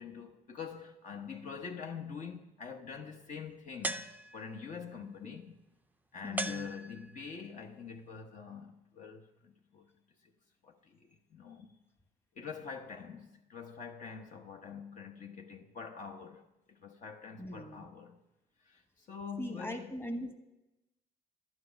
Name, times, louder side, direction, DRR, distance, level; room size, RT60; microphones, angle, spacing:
voice 1, 0.0-5.5 6.1-9.9 10.2-10.3 10.6-11.8 12.3-18.2 18.6-20.0, left 6 dB, 50° left, 1.1 m, -45 dB
sound 1, 3.8-4.7 6.4-7.3, right 2 dB, 10° right, 0.5 m, -39 dB
voice 2, 6.2-6.7 17.4-17.9 19.4-20.3, equal, 15° left, 1.3 m, -40 dB
12.0 x 9.5 x 5.2 m
cardioid pair, 110°, 17 cm